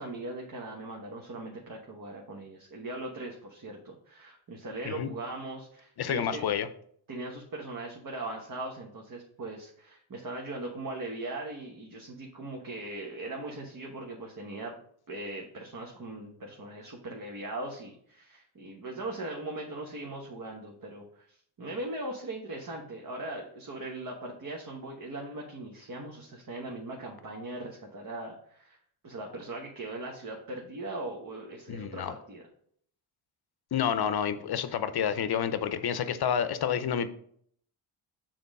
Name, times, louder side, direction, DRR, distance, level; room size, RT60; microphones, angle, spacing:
voice 1, 0.0-6.4 7.1-14.7 15.1-28.8 29.0-32.5, right 2 dB, 40° right, 0 dB, 1.1 m, -39 dB
voice 2, 6.0-6.7 31.7-32.1 33.7-37.1, left 8 dB, 50° left, 12 dB, 0.7 m, -29 dB
6.8 x 3.8 x 5.3 m, 0.63 s
wide cardioid pair, 125°, 50 cm